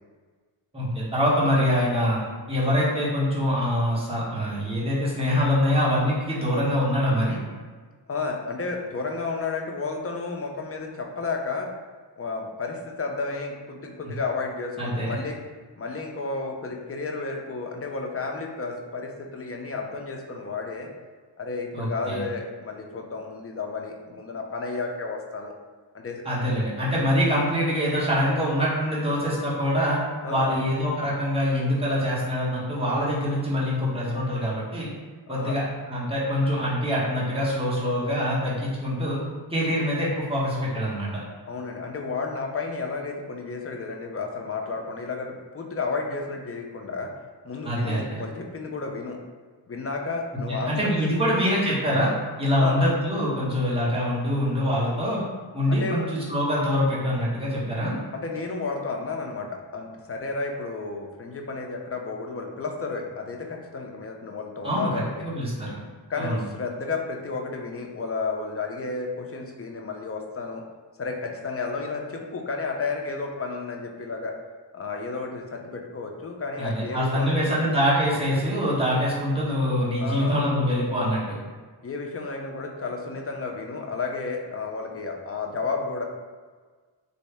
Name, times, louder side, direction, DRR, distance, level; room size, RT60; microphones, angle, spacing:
voice 1, 0.7-2.2 2.5-7.4 14.8-15.1 21.7-22.2 26.2-30.0 30.3-34.9 35.3-39.2 39.5-41.2 47.6-48.2 50.5-52.1 52.4-55.2 55.5-58.0 64.6-64.9 65.2-65.8 66.2-66.4 76.6-81.2, equal, 15° right, -7 dB, 1.0 m, -24 dB
voice 2, 8.1-11.7 12.2-15.4 15.8-20.9 21.4-25.5 25.9-26.2 30.2-30.6 35.3-35.6 41.5-47.1 47.4-49.2 49.7-51.3 52.6-52.8 55.7-56.1 58.1-65.1 66.1-70.6 71.0-74.4 74.7-77.7 80.0-80.4 81.8-86.0, left 4 dB, 35° left, 2 dB, 0.5 m, -32 dB
3.1 x 2.6 x 3.3 m, 1.5 s
wide cardioid pair, 90°, 43 cm